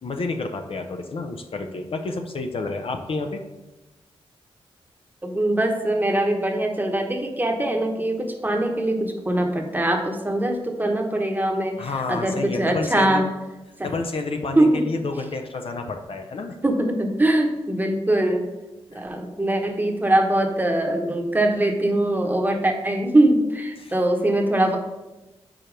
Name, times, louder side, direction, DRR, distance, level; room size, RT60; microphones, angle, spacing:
voice 1, 0.0-3.4 11.8-13.2 13.8-16.6 18.9-19.0 23.8-23.9, left 3 dB, 55° left, 5 dB, 0.6 m, -29 dB
voice 2, 5.2-13.3 13.8-13.9 14.5-14.9 16.6-18.4 18.9-24.8, right 1 dB, 15° right, 3 dB, 1.1 m, -22 dB
4.9 x 4.4 x 5.0 m, 1.1 s
cardioid pair, 60°, 11 cm